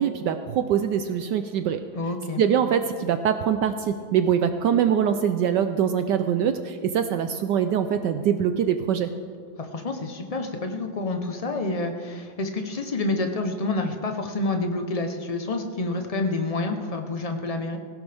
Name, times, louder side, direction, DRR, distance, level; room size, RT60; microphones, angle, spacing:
voice 1, 0.0-1.8 2.4-9.1, right 8 dB, 70° right, 8 dB, 1.2 m, -23 dB
voice 2, 1.9-2.4 9.6-17.8, left 2 dB, 50° left, 5 dB, 0.4 m, -28 dB
17.5 x 16.5 x 3.5 m, 2.1 s
omnidirectional pair, 2.1 m